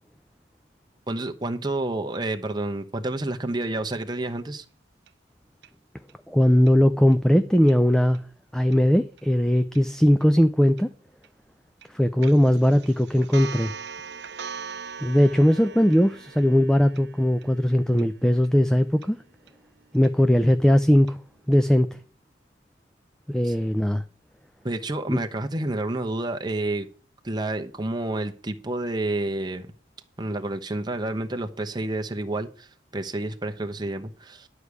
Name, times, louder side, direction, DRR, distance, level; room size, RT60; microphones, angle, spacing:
voice 1, 1.1-4.6 23.4-23.5 24.6-26.9 27.2-29.7 30.2-32.7 32.9-34.5, right 2 dB, 20° right, 0.8 m, -29 dB
sound 1, 5.1-5.2 5.6-5.7 6.1-6.2 6.7-6.8 7.1-7.2 7.7-7.8 8.1-8.2 8.7-8.8 9.2-9.3 9.8-9.9 10.2-10.3 10.8-10.9 11.2-11.3 11.8-11.9 12.2-21.1 21.5-21.6, right 6 dB, 60° right, 0.7 m, -42 dB
voice 2, 6.3-8.2 8.5-10.9 11.9-13.7 15.0-19.2 19.9-21.2 21.5-21.9 23.3-24.0 25.1-25.2, equal, 5° left, 0.4 m, -19 dB
11.5 x 4.9 x 8.2 m
head